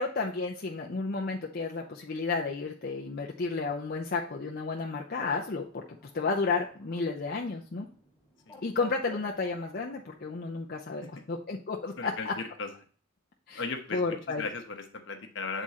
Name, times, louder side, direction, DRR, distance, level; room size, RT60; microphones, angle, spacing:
voice 1, 0.0-7.9 8.6-11.0 11.3-12.3 13.5-13.6 13.9-14.4, left 4 dB, 50° left, 0 dB, 0.6 m, -32 dB
Bird, 5.1-10.6, left 1 dB, 15° left, 1.9 m, -57 dB
voice 2, 12.0-12.7 13.6-14.0 14.3-15.6, left 4 dB, 65° left, 5 dB, 1.1 m, -36 dB
8.1 x 3.7 x 4.2 m, 0.43 s
head